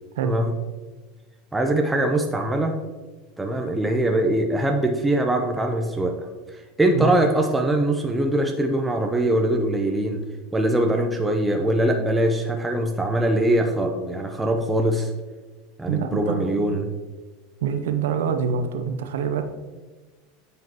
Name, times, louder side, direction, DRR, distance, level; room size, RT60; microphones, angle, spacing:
voice 1, 0.2-0.5 1.5-2.8 3.4-6.2 6.5-10.2 10.5-15.1 15.8-16.9, right 1 dB, 10° right, 3 dB, 0.6 m, -22 dB
voice 2, 15.9-16.5 17.6-19.4, right 7 dB, 90° right, 7 dB, 0.6 m, -25 dB
9.3 x 5.1 x 2.9 m, 1.3 s
supercardioid pair, 125°, 0 cm